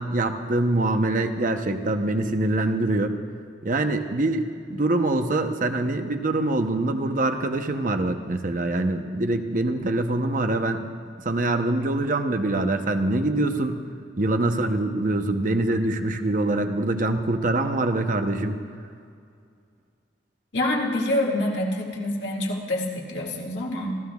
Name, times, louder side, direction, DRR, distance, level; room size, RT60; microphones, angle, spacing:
voice 1, 0.0-3.1 3.6-10.9 11.2-13.8 14.2-18.6, right 2 dB, 45° right, 6 dB, 0.8 m, -24 dB
voice 2, 20.5-24.0, left 1 dB, 65° left, -1 dB, 2.1 m, -26 dB
28.0 x 15.0 x 2.4 m, 2.3 s
head